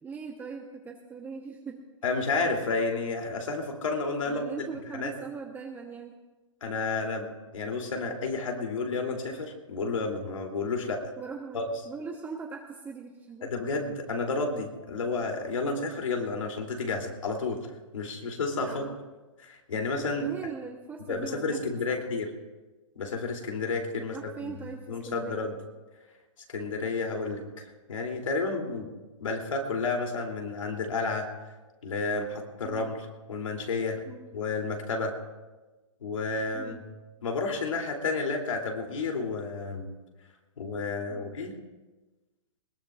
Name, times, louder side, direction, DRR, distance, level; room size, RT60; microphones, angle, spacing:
voice 1, 0.0-1.8 4.2-6.2 11.2-13.5 18.6-18.9 20.2-22.0 24.0-25.5 32.6-32.9 34.0-34.3 36.5-36.8 41.1-41.4, right 5 dB, 10° right, 1 dB, 1.0 m, -41 dB
voice 2, 2.0-4.7 4.9-5.1 6.6-11.0 11.5-11.6 13.4-17.7 17.9-18.8 19.4-20.3 21.1-22.3 23.0-24.5 24.9-25.5 26.5-28.9 29.2-31.3 31.8-33.0 33.3-34.0 34.3-35.2 36.0-36.8 37.2-39.9 40.6-41.5, left 3 dB, 80° left, 2 dB, 3.0 m, -31 dB
21.0 x 19.0 x 2.4 m, 1.2 s
hypercardioid pair, 140°, 16 cm